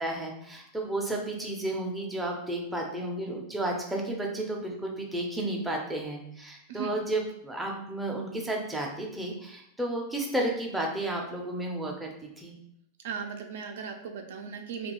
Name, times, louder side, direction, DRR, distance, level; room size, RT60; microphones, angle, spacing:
voice 1, 0.0-12.5, right 1 dB, 5° right, -1 dB, 0.4 m, -32 dB
voice 2, 13.0-14.9, right 6 dB, 75° right, 5 dB, 0.4 m, -37 dB
2.3 x 2.2 x 2.9 m, 0.73 s
supercardioid pair, 145°, 0 cm